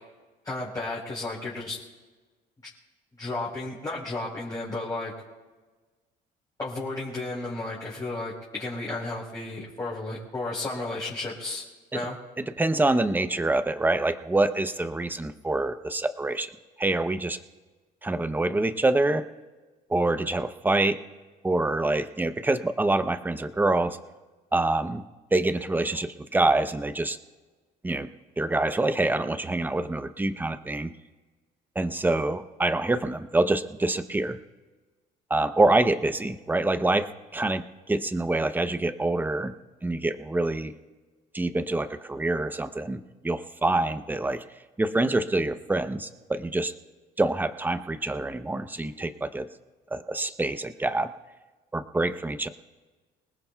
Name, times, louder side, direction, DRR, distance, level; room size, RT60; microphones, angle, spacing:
voice 1, 0.4-1.8 3.2-5.1 6.6-11.6 11.9-12.2, left 2 dB, 20° left, -7 dB, 4.2 m, -33 dB
voice 2, 12.6-16.5 16.8-17.4 18.0-19.2 19.9-21.0 21.4-24.0 24.5-25.0 25.3-27.2 27.8-28.1 28.4-30.9 31.8-34.4 35.3-39.5 39.8-40.7 41.3-44.4 44.8-46.7 47.2-49.5 49.9-51.1 51.7-52.5, right 2 dB, 10° right, 10 dB, 0.8 m, -26 dB
26.5 x 19.0 x 2.3 m, 1.3 s
cardioid pair, 110°, 17 cm